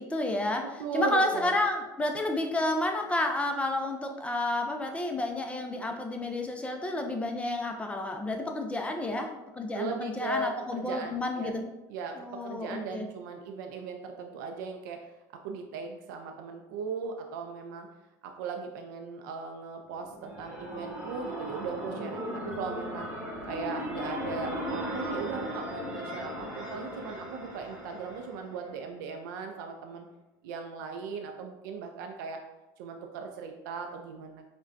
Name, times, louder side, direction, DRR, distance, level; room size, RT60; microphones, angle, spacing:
voice 1, 0.0-0.7 0.9-11.6 12.2-13.1, left 1 dB, 10° left, 3 dB, 0.4 m, -30 dB
voice 2, 0.6-1.5 9.7-11.6 11.9-15.1 15.3-17.9 18.2-23.1 23.5-30.1 30.4-32.4 32.8-34.4, right 4 dB, 80° right, 4 dB, 0.4 m, -38 dB
sound 1, 19.9-28.8, equal, 15° right, 1.3 m, -37 dB
5.0 x 2.2 x 2.5 m, 0.99 s
supercardioid pair, 110°, 10 cm